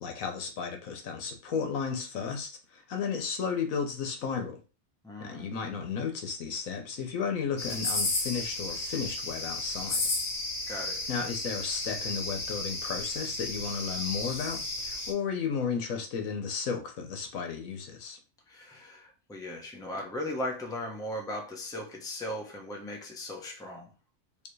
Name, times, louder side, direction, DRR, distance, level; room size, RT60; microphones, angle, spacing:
voice 1, 0.0-4.6 5.2-10.0 11.1-18.2, left 6 dB, 80° left, 1.3 m, -34 dB
voice 2, 5.0-5.5 10.7-11.1 18.5-23.9, left 1 dB, 5° left, 0.6 m, -38 dB
sound 1, 7.6-15.1, left 2 dB, 50° left, 1.2 m, -33 dB
4.7 x 2.9 x 3.2 m
omnidirectional pair, 1.4 m